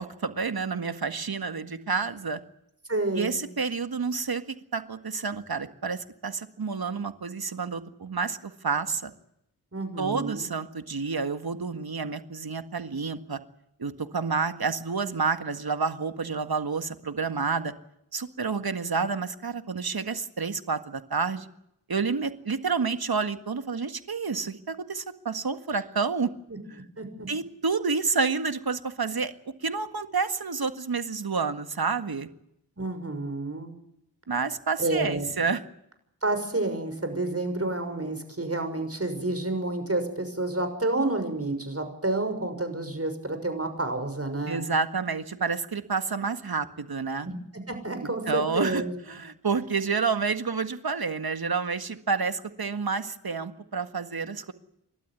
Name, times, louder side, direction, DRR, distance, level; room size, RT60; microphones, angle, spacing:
voice 1, 0.0-2.4 3.2-9.1 10.0-13.4 13.8-17.7 18.1-21.5 21.9-26.3 26.7-26.8 27.3-29.3 29.6-32.3 34.3-35.6 44.5-47.3 48.3-54.5, right 5 dB, 60° right, 10 dB, 1.8 m, -29 dB
voice 2, 2.9-3.4 9.7-10.5 26.5-26.6 27.0-27.3 32.8-33.8 34.8-35.3 36.2-44.6 47.3-48.9, right 2 dB, 35° right, 7 dB, 6.4 m, -29 dB
29.0 x 12.5 x 9.8 m, 0.77 s
cardioid pair, 50°, 42 cm